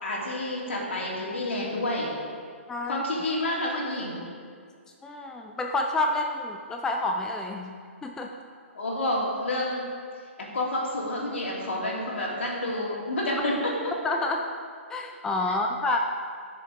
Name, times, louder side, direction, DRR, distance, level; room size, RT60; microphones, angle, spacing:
voice 1, 0.0-2.1 2.9-4.3 8.7-9.8 10.4-13.9 15.4-15.6, left 1 dB, 65° left, -3 dB, 3.0 m, -29 dB
voice 2, 2.7-3.0 5.0-7.7 8.0-8.3 14.0-14.5 14.9-16.0, left 2 dB, 10° left, 2 dB, 0.5 m, -28 dB
13.0 x 6.8 x 4.9 m, 2.1 s
figure-of-eight pair, 125°, 7 cm